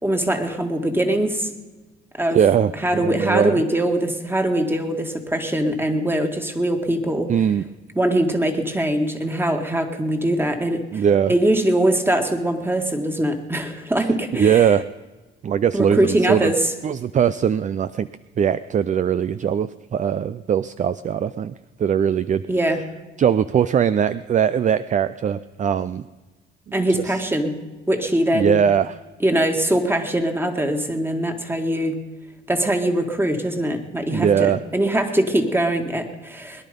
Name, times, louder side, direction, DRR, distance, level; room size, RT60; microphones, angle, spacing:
voice 1, 0.0-1.5 2.2-2.4 2.7-7.3 8.0-14.7 15.7-16.7 22.5-23.0 26.7-28.6 29.2-32.1 32.5-36.6, right 1 dB, 10° right, 5 dB, 1.9 m, -22 dB
voice 2, 2.3-3.6 7.3-7.6 10.9-11.3 14.3-14.8 15.4-16.5 16.8-18.1 18.4-21.5 21.8-22.4 23.2-26.1 28.3-29.0 34.1-34.6, right 8 dB, 40° right, 14 dB, 0.4 m, -20 dB
21.5 x 10.5 x 5.3 m, 1.2 s
cardioid pair, 90°, 20 cm